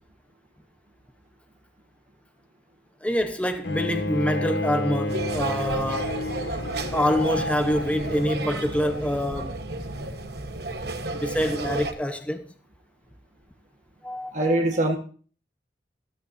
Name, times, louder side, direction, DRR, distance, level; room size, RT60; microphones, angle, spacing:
voice 1, 3.0-6.1 6.9-9.6 11.1-12.5 14.0-14.6, equal, 10° left, 1.0 m, -26 dB
Bowed string instrument, 3.6-8.7, left 2 dB, 80° left, 1.3 m, -31 dB
sound 1, 5.1-11.9, right 2 dB, 65° right, 1.3 m, -32 dB
voice 2, 14.3-15.0, right 1 dB, 45° right, 1.6 m, -22 dB
14.5 x 12.5 x 2.7 m
head